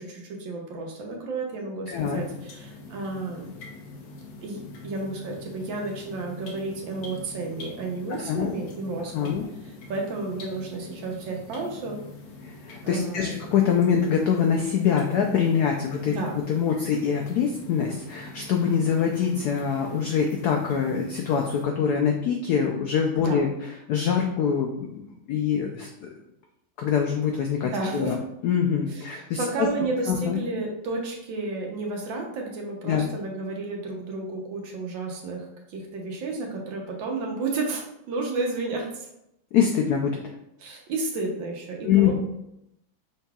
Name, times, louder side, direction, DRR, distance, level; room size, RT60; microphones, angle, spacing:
voice 1, 0.0-3.5 4.4-9.4 9.6-12.0 12.8-13.3 16.0-16.4 23.2-23.4 27.6-28.2 28.9-39.1 40.6-42.1, right 3 dB, 70° right, 1 dB, 1.5 m, -32 dB
voice 2, 1.9-2.2 8.1-8.5 9.1-9.5 12.4-16.1 16.5-23.5 23.9-25.0 25.3-26.1 26.8-28.2 28.4-29.7 30.1-30.4 32.8-33.1 39.5-40.2 41.8-42.1, left 7 dB, 80° left, 2 dB, 0.8 m, -24 dB
sound 1, 1.9-21.6, left 3 dB, 65° left, 1.2 m, -44 dB
5.6 x 3.7 x 2.3 m, 0.82 s
omnidirectional pair, 2.2 m